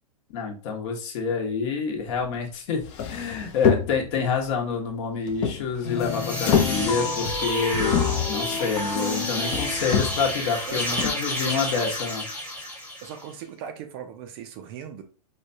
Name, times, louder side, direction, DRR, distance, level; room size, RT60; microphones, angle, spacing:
voice 1, 0.3-2.8 3.1-12.2, left 5 dB, 50° left, 1.0 m, -27 dB
sound 1, 2.3-2.4 2.8-4.2 5.3-6.1 6.3-7.2 7.8-8.5 9.4-10.4 11.0-11.1, left 7 dB, 30° left, 0.6 m, -26 dB
sound 2, 5.8-10.4, left 6 dB, 75° left, 0.7 m, -31 dB
sound 3, 5.9-13.3, left 1 dB, 10° left, 1.0 m, -31 dB
voice 2, 9.3-9.6 10.7-11.2 11.4-11.9 13.0-15.0, right 8 dB, 40° right, 0.5 m, -39 dB
4.8 x 2.2 x 2.6 m
hypercardioid pair, 140°, 20 cm